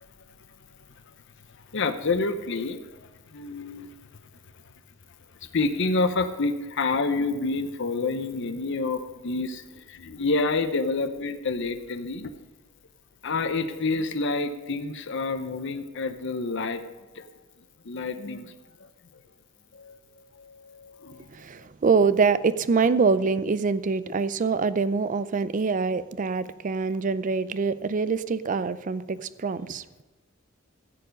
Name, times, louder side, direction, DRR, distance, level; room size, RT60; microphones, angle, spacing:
voice 1, 1.7-3.0 3.3-3.9 5.5-12.3 13.2-16.9 17.1-17.3 17.8-18.5 18.8-18.9 19.7-20.0 20.3-21.3, left 3 dB, 60° left, 0.8 m, -28 dB
voice 2, 21.3-29.8, right 5 dB, 40° right, 0.4 m, -25 dB
15.0 x 6.9 x 5.3 m
head